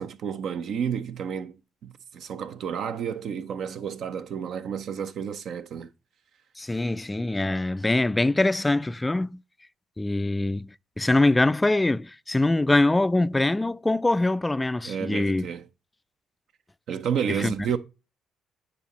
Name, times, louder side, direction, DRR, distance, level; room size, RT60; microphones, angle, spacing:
voice 1, 0.0-5.9 14.8-15.7 16.9-17.8, right 8 dB, 60° right, 0.6 m, -31 dB
voice 2, 6.6-9.4 10.0-10.7 11.0-15.5 17.4-17.5, left 2 dB, 15° left, 0.3 m, -23 dB
9.6 x 4.1 x 3.0 m
hypercardioid pair, 50°, 0 cm